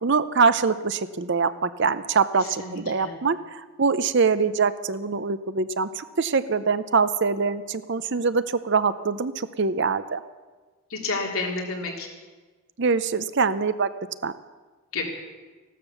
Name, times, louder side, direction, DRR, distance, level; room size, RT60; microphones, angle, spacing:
voice 1, 0.0-10.2 12.8-13.9 14.2-14.3, right 5 dB, 50° right, 14 dB, 0.6 m, -24 dB
voice 2, 2.4-3.1 10.9-12.1 14.9-15.0, left 3 dB, 70° left, 0 dB, 3.4 m, -30 dB
15.0 x 12.5 x 7.0 m, 1.3 s
head